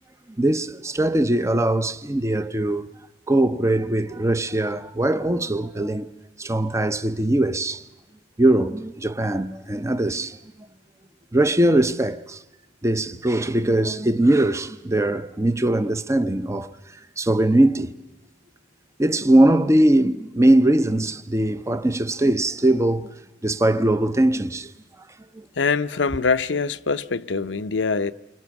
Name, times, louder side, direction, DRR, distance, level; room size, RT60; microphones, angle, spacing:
voice 1, 0.4-2.9 3.3-6.1 6.4-7.8 8.4-10.4 11.3-12.4 12.8-16.7 17.2-17.9 19.0-23.1 23.4-24.7 25.4-25.5, right 1 dB, 15° right, 0.7 m, -21 dB
voice 2, 25.6-28.1, left 4 dB, 80° left, 0.7 m, -23 dB
28.5 x 24.5 x 6.0 m
head